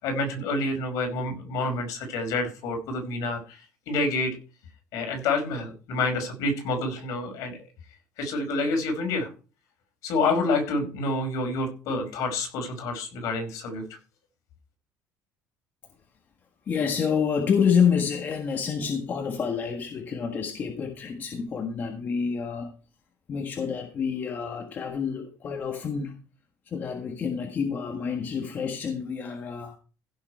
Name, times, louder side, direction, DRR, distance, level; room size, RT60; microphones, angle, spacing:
voice 1, 0.0-3.6 3.9-4.4 4.9-7.6 8.2-9.3 10.0-13.8, left 2 dB, 65° left, 5.2 m, -28 dB
voice 2, 16.7-22.7 23.3-26.1 26.7-29.8, left 6 dB, 30° left, 1.5 m, -28 dB
16.0 x 6.6 x 4.6 m
cardioid pair, 165°, 6 cm